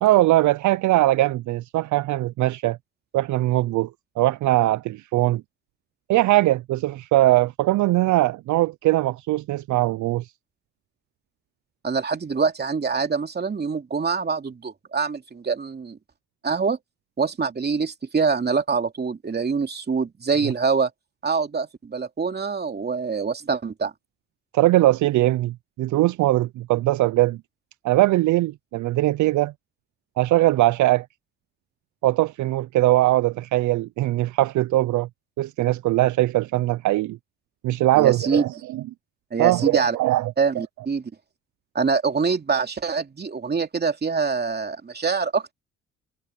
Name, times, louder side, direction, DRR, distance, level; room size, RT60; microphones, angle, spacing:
voice 1, 0.0-2.8 3.1-3.9 4.2-5.4 6.1-10.2 24.5-27.4 27.8-29.5 30.2-31.1 32.0-35.1 35.4-37.2 37.6-38.8 39.4-40.3, right 16 dB, 75° right, 0.6 m, -21 dB
voice 2, 11.8-16.0 16.4-16.8 17.2-20.9 21.2-23.9 37.9-38.4 39.3-40.0 40.4-41.1 41.7-45.5, right 5 dB, 35° right, 2.8 m, -25 dB
cardioid pair, 90°, 30 cm